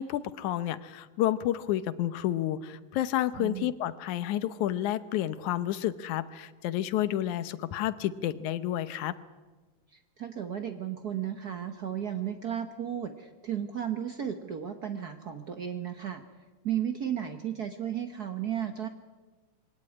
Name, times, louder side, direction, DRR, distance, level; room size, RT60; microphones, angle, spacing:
voice 1, 0.0-9.1, left 12 dB, 85° left, 14 dB, 2.3 m, -30 dB
voice 2, 3.4-3.7 9.9-16.2 16.6-18.9, right 9 dB, 75° right, 7 dB, 0.8 m, -34 dB
22.5 x 17.5 x 9.8 m, 1.3 s
omnidirectional pair, 3.3 m